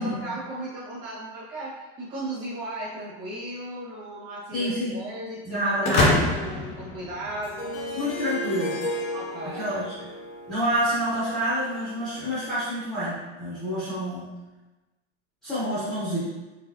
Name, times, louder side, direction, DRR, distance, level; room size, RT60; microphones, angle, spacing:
voice 1, 0.0-7.8 9.1-9.7, right 1 dB, 30° right, -7 dB, 1.3 m, -36 dB
voice 2, 4.5-4.9 5.5-6.2 7.9-8.8 9.4-10.0 10.5-14.3 15.4-16.2, equal, ahead, -12 dB, 0.7 m, -27 dB
sound 1, 5.8-7.8, left 2 dB, 20° left, 0.3 m, -25 dB
Harp, 7.4-12.4, equal, 70° left, 1.0 m, -35 dB
4.1 x 3.3 x 2.7 m, 1.1 s
supercardioid pair, 170°, 34 cm